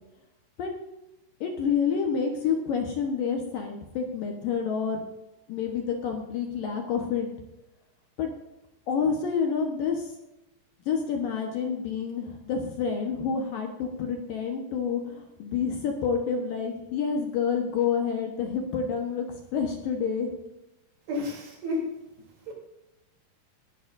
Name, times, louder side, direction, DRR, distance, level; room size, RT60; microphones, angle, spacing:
voice 1, 1.4-5.0 5.5-7.3 8.2-8.3 8.9-10.1 10.9-20.3, left 6 dB, 65° left, 2 dB, 2.5 m, -28 dB
voice 2, 21.1-21.9 22.5-22.6, left 2 dB, 70° right, -1 dB, 5.3 m, -31 dB
19.0 x 11.0 x 2.6 m, 0.96 s
omnidirectional pair, 5.0 m